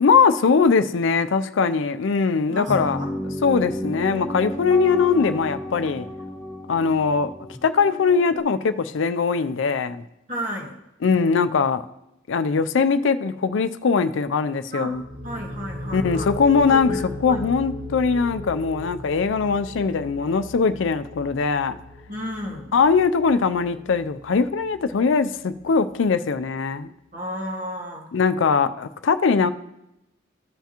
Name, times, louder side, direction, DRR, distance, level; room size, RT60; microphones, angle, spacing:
voice 1, 0.0-3.0 3.4-6.1 6.7-7.3 7.6-10.0 11.0-11.8 12.3-15.0 15.9-21.8 22.7-26.9 28.1-29.5, left 5 dB, 70° left, 11 dB, 0.4 m, -21 dB
voice 2, 2.5-3.1 10.3-10.8 14.7-16.3 16.7-17.4 22.1-22.7 27.1-28.1, equal, 40° right, 0 dB, 1.6 m, -33 dB
sound 1, 2.7-8.4, left 1 dB, 10° left, 1.1 m, -32 dB
sound 2, 14.9-26.4, left 2 dB, 60° right, 1.0 m, -37 dB
14.0 x 5.8 x 2.9 m, 0.87 s
head